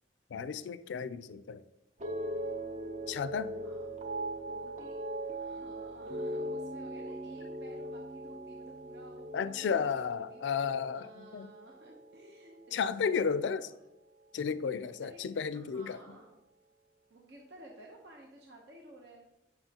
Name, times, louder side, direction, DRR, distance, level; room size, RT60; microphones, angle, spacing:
voice 1, 0.3-1.6 3.1-3.6 9.3-11.5 12.7-13.7 14.3-16.0, left 6 dB, 85° left, 0.3 m, -33 dB
sound 1, 2.0-12.4 12.7-13.2, right 1 dB, 40° right, 0.5 m, -40 dB
voice 2, 3.5-4.0 4.4-13.2 13.5-13.7 14.8-15.3 15.5-16.4 17.1-19.4, right 2 dB, 70° right, 0.9 m, -55 dB
7.9 x 5.8 x 2.9 m
head